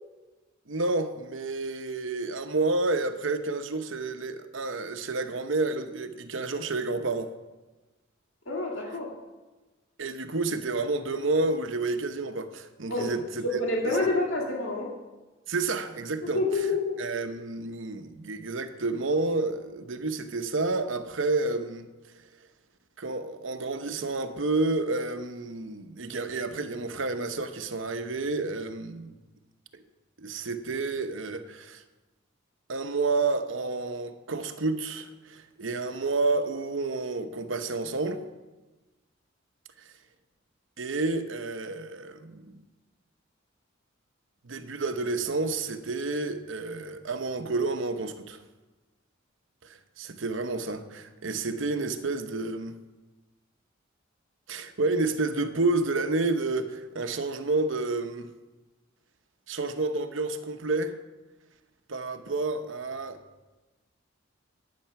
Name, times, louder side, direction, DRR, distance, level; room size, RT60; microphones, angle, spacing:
voice 1, 0.7-7.3 10.0-13.9 15.5-16.7 17.0-21.9 23.0-29.1 30.2-31.8 32.7-38.2 40.8-42.6 44.4-48.4 50.0-52.7 54.5-58.3 59.5-61.0 61.9-63.2, right 3 dB, 70° right, 0.9 m, -30 dB
voice 2, 8.5-9.1 12.9-13.1 13.4-14.9 16.3-17.0, left 2 dB, 70° left, 1.9 m, -27 dB
10.5 x 9.6 x 5.9 m
head